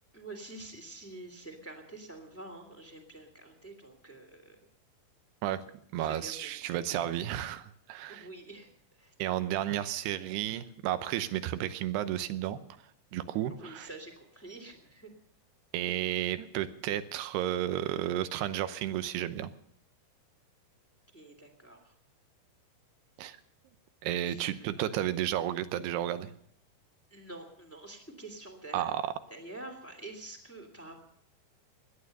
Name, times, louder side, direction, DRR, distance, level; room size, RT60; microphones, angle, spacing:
voice 1, 0.1-4.6 6.0-6.5 8.1-8.7 9.0-9.1 13.5-15.1 21.1-21.9 24.3-24.9 27.1-28.8 29.3-31.0, right 2 dB, 5° left, 3 dB, 2.1 m, -47 dB
voice 2, 5.9-8.3 9.2-12.6 13.1-13.9 15.7-19.5 23.2-23.4 24.0-26.3 28.7-29.0, right 12 dB, 85° right, 12 dB, 2.9 m, -32 dB
18.0 x 12.0 x 6.7 m, 0.68 s
omnidirectional pair, 4.7 m